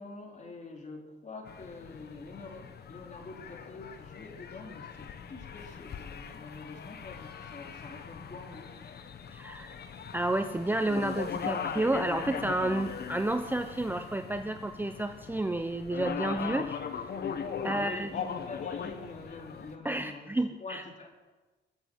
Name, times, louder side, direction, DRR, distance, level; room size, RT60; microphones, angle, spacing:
voice 1, 0.0-8.8 17.6-20.3 20.6-21.1, left 3 dB, 35° left, 1 dB, 3.4 m, -45 dB
sound 1, 1.5-19.8, left 7 dB, 55° left, 1.3 m, -40 dB
voice 2, 9.3-9.7 10.1-16.8 17.6-18.1 19.8-20.8, right 1 dB, 10° right, 8 dB, 0.7 m, -30 dB
21.5 x 7.9 x 6.3 m, 1.2 s
cardioid pair, 90°, 20 cm